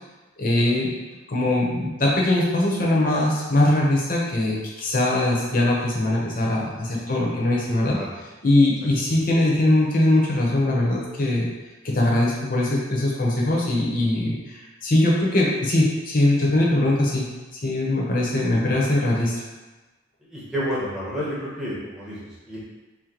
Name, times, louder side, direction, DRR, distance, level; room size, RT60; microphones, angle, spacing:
voice 1, 0.4-0.9 1.3-8.0 8.4-11.5 11.8-17.3 17.6-19.3, left 1 dB, 45° left, -3 dB, 0.8 m, -21 dB
voice 2, 7.8-8.1 20.3-22.6, equal, 5° right, -8 dB, 0.9 m, -30 dB
4.5 x 2.1 x 3.8 m, 1.2 s
head